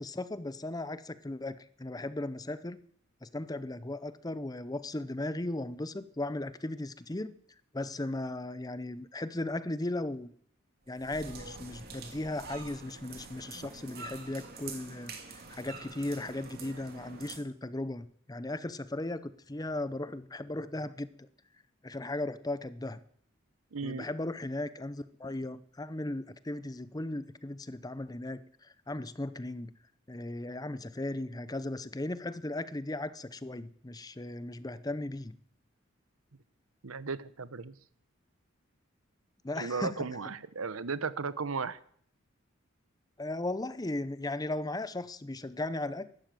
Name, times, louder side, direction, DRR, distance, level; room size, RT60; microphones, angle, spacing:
voice 1, 0.0-2.8 3.2-7.3 7.7-10.3 10.9-21.1 21.8-23.0 23.8-29.7 30.1-35.3 39.4-40.1 43.2-46.1, left 2 dB, 20° left, 14 dB, 0.6 m, -37 dB
sound 1, 10.9-17.4, right 4 dB, 50° right, 2.7 m, -46 dB
voice 2, 23.7-24.1 36.8-37.7 39.6-41.8, right 4 dB, 90° right, 16 dB, 0.9 m, -35 dB
14.0 x 11.5 x 7.7 m, 0.62 s
head